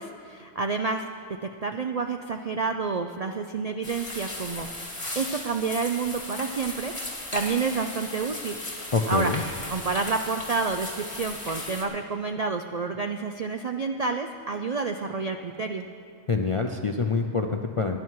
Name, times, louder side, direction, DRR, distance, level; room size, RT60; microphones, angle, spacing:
voice 1, 0.0-4.7 5.1-6.9 7.3-8.6 9.1-9.3 9.7-15.9, right 4 dB, 55° right, 5 dB, 0.4 m, -29 dB
sound 1, 3.8-11.8, left 1 dB, 25° left, 1.8 m, -36 dB
voice 2, 8.9-9.4 16.3-18.0, left 4 dB, 45° left, 4 dB, 0.4 m, -26 dB
16.5 x 11.0 x 4.7 m, 2.6 s
omnidirectional pair, 1.3 m